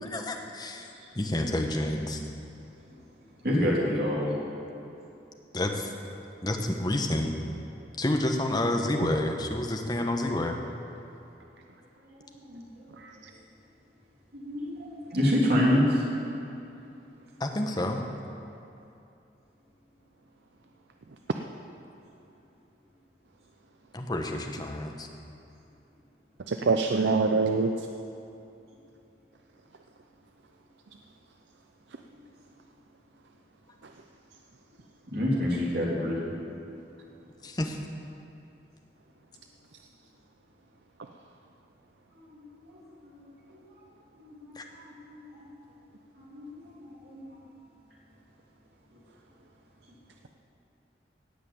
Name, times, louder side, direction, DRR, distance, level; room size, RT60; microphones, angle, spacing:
voice 1, 0.0-0.9 1.1-2.2 5.5-5.9 6.4-7.4 8.0-10.6 17.4-18.0 23.9-25.1 37.4-37.8 44.5-44.6, left 1 dB, 25° left, 3 dB, 1.0 m, -29 dB
voice 2, 2.8-4.4 12.0-13.4 14.3-16.1 32.1-32.2 35.1-36.3 42.1-45.5 46.1-47.4 48.9-49.0 49.9-50.0, left 1 dB, 60° right, -5 dB, 3.2 m, -30 dB
voice 3, 26.5-27.7, right 4 dB, 90° right, 5 dB, 0.6 m, -25 dB
16.5 x 5.9 x 8.5 m, 2.8 s
head